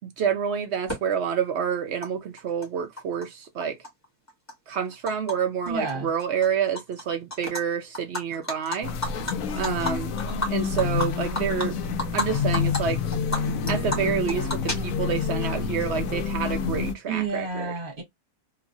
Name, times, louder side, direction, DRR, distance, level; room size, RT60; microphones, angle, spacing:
voice 1, 0.0-3.8 4.7-8.9 9.5-10.2 10.5-11.8 12.1-13.0 13.7-17.7, right 7 dB, 70° right, 0.6 m, -28 dB
Animal, 0.9-1.0 2.0-2.1 2.4-3.3 3.6-5.3 5.7-5.9 6.2-7.0 7.3-7.6 7.9-12.3 12.5-12.8 13.1-15.2, left 1 dB, 10° left, 1.0 m, -32 dB
voice 2, 5.7-6.1 17.1-18.0, right 4 dB, 35° right, 1.5 m, -30 dB
sound 1, 8.8-16.9, left 6 dB, 70° left, 0.9 m, -28 dB
2.9 x 2.4 x 2.5 m
omnidirectional pair, 1.6 m